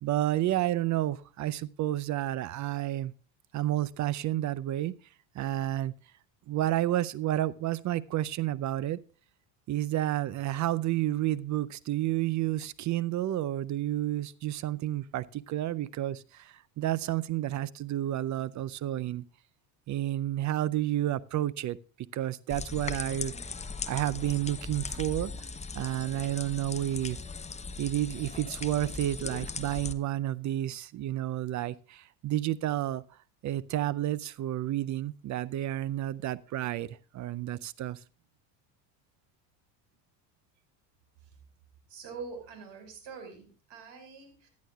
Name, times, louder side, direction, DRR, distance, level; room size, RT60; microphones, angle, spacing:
voice 1, 0.0-3.1 3.5-4.9 5.3-5.9 6.5-9.0 9.7-19.2 19.9-21.8 22.1-23.3 23.9-25.5 25.7-27.2 27.8-33.0 33.4-38.0, right 14 dB, 40° right, 20 dB, 0.5 m, -30 dB
sound 1, 22.5-29.9, left 4 dB, 15° left, 0.7 m, -39 dB
voice 2, 41.9-44.5, right 5 dB, 60° right, 6 dB, 4.9 m, -44 dB
15.5 x 10.5 x 2.3 m, 0.37 s
supercardioid pair, 100°, 48 cm